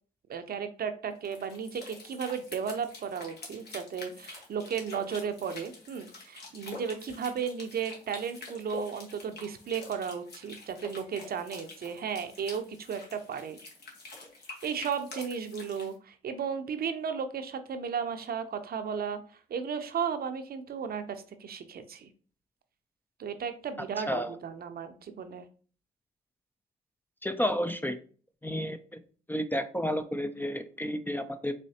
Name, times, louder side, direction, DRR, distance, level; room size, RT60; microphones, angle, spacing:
voice 1, 0.3-13.6 14.6-19.2 19.5-22.1 23.2-25.4, right 6 dB, 55° right, 9 dB, 0.6 m, -34 dB
sound 1, 1.2-15.9, left 2 dB, 60° left, 1.3 m, -46 dB
voice 2, 27.2-28.0 28.4-29.0 29.3-31.5, equal, 10° left, 9 dB, 0.4 m, -31 dB
4.1 x 3.1 x 2.8 m, 0.40 s
hypercardioid pair, 45°, 19 cm